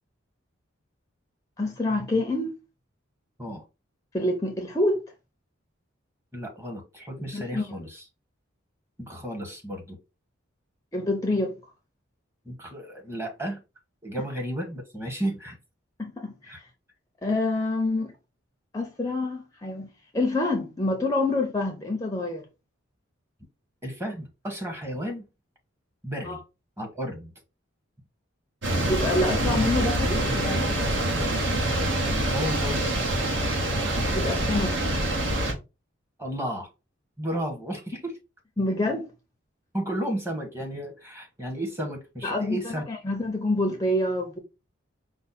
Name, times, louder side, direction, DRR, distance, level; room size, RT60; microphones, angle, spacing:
voice 1, 1.6-2.6 4.1-5.0 7.3-7.7 10.9-11.6 16.0-16.6 17.2-18.1 18.7-22.4 26.2-26.4 28.9-30.8 34.1-34.9 38.6-39.1 42.2-44.4, left 2 dB, 15° left, 0.6 m, -27 dB
voice 2, 6.3-8.0 9.0-10.0 12.4-13.6 14.0-15.6 16.5-16.6 23.8-25.3 26.0-26.4 26.8-27.3 32.1-32.9 36.2-36.7 37.2-38.2 39.7-42.8, equal, 15° right, 1.1 m, -33 dB
sound 1, 28.6-35.5, right 1 dB, 65° right, 1.1 m, -25 dB
5.1 x 2.1 x 4.1 m
head